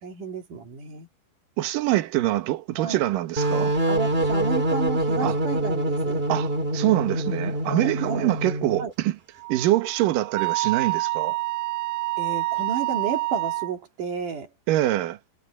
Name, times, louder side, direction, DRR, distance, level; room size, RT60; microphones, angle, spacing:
voice 1, 0.0-1.1 2.8-3.0 3.9-6.2 7.6-8.3 8.8-8.9 12.2-14.5, right 6 dB, 50° right, 3.5 m, -32 dB
voice 2, 1.6-3.8 5.2-5.4 6.3-9.2 9.5-11.4 14.7-15.2, right 15 dB, 65° right, 2.3 m, -24 dB
sound 1, 3.4-8.9, right 1 dB, 20° right, 1.5 m, -25 dB
Wind instrument woodwind instrument, 9.4-13.7, right 19 dB, 85° right, 2.1 m, -28 dB
omnidirectional pair, 5.2 m